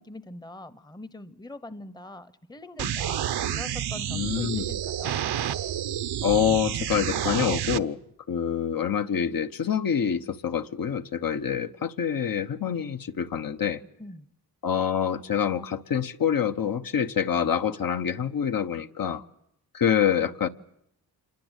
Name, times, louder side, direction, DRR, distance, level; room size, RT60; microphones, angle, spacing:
voice 1, 0.0-3.2 3.5-5.2 14.0-14.3, left 2 dB, 10° left, 0.9 m, -43 dB
sound 1, 2.8-7.8, right 10 dB, 80° right, 1.0 m, -29 dB
voice 2, 4.1-4.7 6.2-8.0 8.3-13.8 14.6-19.2 19.7-20.5, left 8 dB, 60° left, 1.1 m, -26 dB
27.5 x 21.5 x 8.2 m
wide cardioid pair, 155°, 38 cm